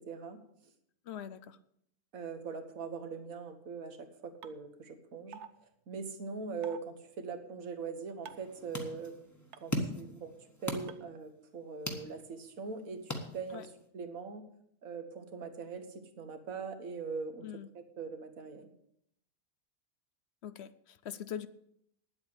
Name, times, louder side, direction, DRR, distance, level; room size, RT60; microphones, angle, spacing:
voice 1, 0.1-0.4 2.1-9.1 9.6-10.3 10.6-14.5 14.8-17.5 18.0-18.7, right 5 dB, 80° right, 8 dB, 1.8 m, -42 dB
voice 2, 1.1-1.6 13.5-13.7 17.4-17.7 20.4-21.5, left 9 dB, 60° left, 14 dB, 0.8 m, -42 dB
sound 1, 4.4-4.5 5.3-5.5 6.6-6.8 8.3-8.5 9.5-9.6 10.9-11.0, right 8 dB, 60° right, 0.9 m, -46 dB
sound 2, 8.2-13.9, left 1 dB, 15° left, 1.4 m, -41 dB
9.9 x 8.0 x 8.6 m, 0.73 s
omnidirectional pair, 1.4 m